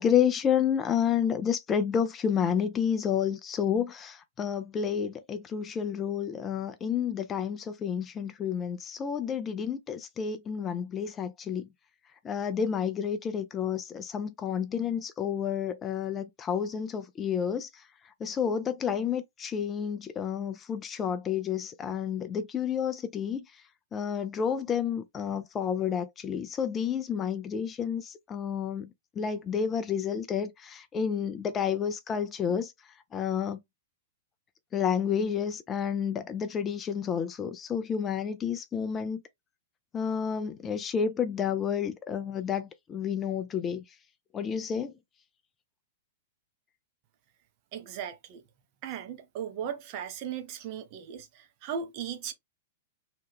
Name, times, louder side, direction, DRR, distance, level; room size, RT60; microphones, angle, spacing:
voice 1, 0.0-11.7 12.2-17.8 18.2-23.4 23.9-28.9 29.2-32.7 33.1-33.6 34.7-39.2 39.9-43.8 44.3-44.9, left 7 dB, 20° left, 0.3 m, -30 dB
voice 2, 47.7-48.4 48.8-52.3, right 8 dB, 40° right, 0.6 m, -37 dB
2.8 x 2.2 x 3.4 m
figure-of-eight pair, 100°, 0 cm